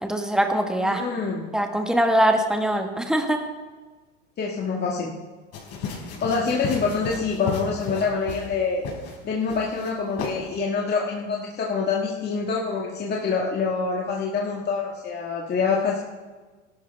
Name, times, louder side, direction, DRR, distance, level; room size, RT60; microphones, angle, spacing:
voice 1, 0.0-1.0 1.5-3.4, right 1 dB, ahead, 4 dB, 1.7 m, -22 dB
voice 2, 0.8-1.5 4.4-5.1 6.0-8.8 9.2-16.0, left 5 dB, 30° left, -2 dB, 1.8 m, -26 dB
sound 1, 5.5-8.5 8.8-9.1 9.5-9.9 10.2-10.3, left 5 dB, 45° left, 5.3 m, -33 dB
18.0 x 12.5 x 3.5 m, 1.3 s
supercardioid pair, 105°, 34 cm